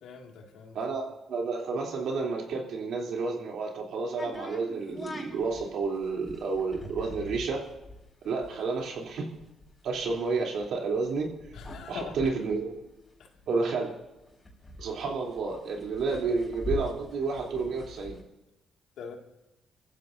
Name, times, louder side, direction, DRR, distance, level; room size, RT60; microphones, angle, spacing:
voice 1, 0.0-0.8 11.5-12.2 13.2-13.3 19.0-19.1, left 5 dB, 80° left, 2 dB, 2.2 m, -42 dB
voice 2, 0.7-7.6 8.2-9.3 9.8-11.3 11.9-12.8 13.5-13.9 14.8-18.2, right 4 dB, 70° right, -1 dB, 3.3 m, -30 dB
sound 1, 4.2-13.7 14.0-14.1 14.3-18.2, left 2 dB, 20° left, 4.8 m, -43 dB
26.0 x 15.0 x 2.7 m, 0.93 s
cardioid pair, 90°, 0 cm